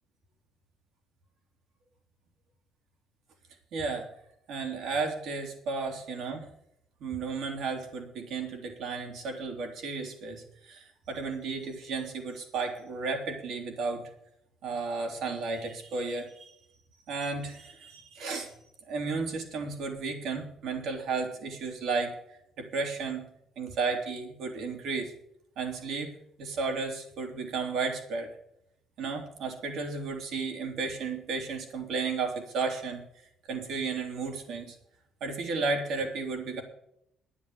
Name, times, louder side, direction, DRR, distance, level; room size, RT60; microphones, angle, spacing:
voice 1, 3.7-4.1 4.5-6.5 7.0-14.0 14.6-16.5 17.1-18.6 18.8-22.2 22.6-23.3 23.6-25.1 25.6-26.1 26.4-28.3 29.0-33.0 33.5-34.8 35.2-36.6, right 4 dB, 60° right, 3 dB, 3.3 m, -33 dB
10.5 x 10.0 x 8.3 m, 0.74 s
cardioid pair, 165°, 0 cm